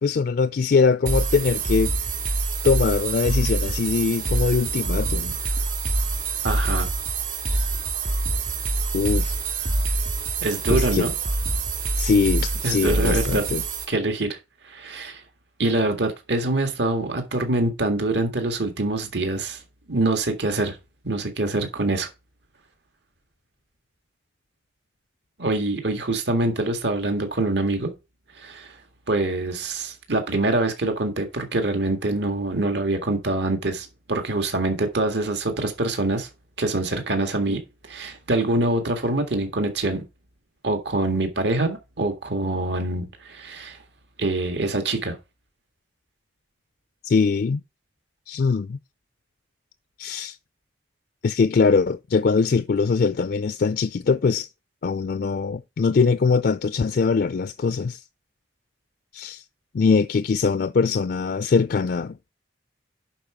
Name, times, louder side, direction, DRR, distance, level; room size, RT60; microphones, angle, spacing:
voice 1, 0.0-1.9 2.6-5.3 7.5-7.6 8.9-9.4 10.7-11.1 12.0-13.6 47.0-47.6 48.3-48.8 50.0-50.4 51.2-54.5 54.8-58.0 59.1-59.4 59.7-62.3, left 4 dB, 55° left, 0.4 m, -22 dB
sound 1, 1.1-13.9, right 3 dB, 45° right, 1.9 m, -25 dB
voice 2, 6.4-6.9 10.4-11.1 12.6-13.4 13.9-14.4 14.6-15.2 15.6-19.6 19.9-20.8 21.0-22.1 25.4-27.9 28.4-28.7 29.1-36.3 36.6-40.0 40.6-43.8 44.2-45.1, right 2 dB, 65° right, 1.8 m, -25 dB
11.0 x 4.7 x 4.9 m
head